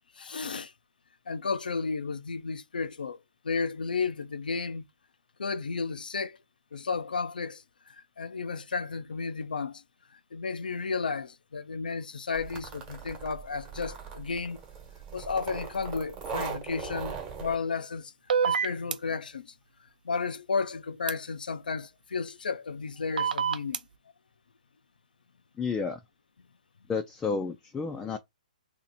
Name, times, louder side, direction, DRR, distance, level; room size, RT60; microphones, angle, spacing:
voice 1, 0.2-0.7 1.3-4.8 5.4-6.4 6.7-9.8 10.1-14.6 15.1-18.1 18.4-19.5 20.0-23.8, left 5 dB, 85° left, 0.5 m, -33 dB
sound 1, 12.3-17.6, right 6 dB, 25° right, 1.2 m, -40 dB
sound 2, 18.3-19.0 21.1-21.2 23.2-23.8, right 7 dB, 75° right, 0.5 m, -26 dB
voice 2, 25.6-26.0 26.9-28.2, left 5 dB, 10° left, 0.4 m, -31 dB
2.8 x 2.5 x 4.1 m
hypercardioid pair, 140°, 5 cm